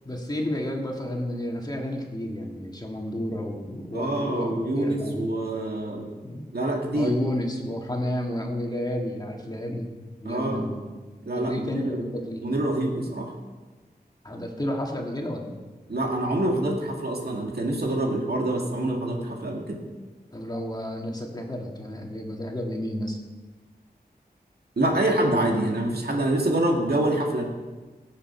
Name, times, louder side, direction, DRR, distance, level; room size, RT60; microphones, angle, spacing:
voice 1, 0.1-5.3 6.2-6.5 6.9-10.8 11.4-12.5 14.2-15.6 20.3-23.2, left 1 dB, 25° left, 1 dB, 1.9 m, -31 dB
voice 2, 3.9-6.1 6.5-7.1 10.2-10.6 11.2-12.1 12.4-13.3 15.9-19.8 24.8-27.4, right 1 dB, 70° right, 0 dB, 2.1 m, -26 dB
18.0 x 7.5 x 4.4 m, 1.3 s
wide cardioid pair, 85°, 17 cm